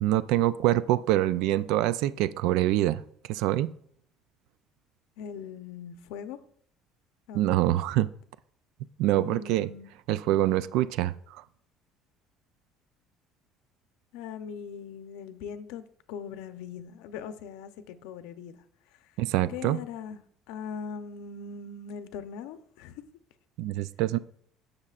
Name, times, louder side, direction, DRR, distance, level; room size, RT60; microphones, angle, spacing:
voice 1, 0.0-3.0 3.3-3.7 7.3-8.1 9.0-9.7 10.1-11.1 19.2-19.8 23.6-24.2, right 14 dB, 65° right, 0.3 m, -25 dB
voice 2, 5.2-6.4 7.3-7.4 9.1-9.9 14.1-18.6 19.5-20.2 20.5-23.1, left 6 dB, 85° left, 0.7 m, -40 dB
15.5 x 6.5 x 2.5 m
cardioid pair, 175°, 0 cm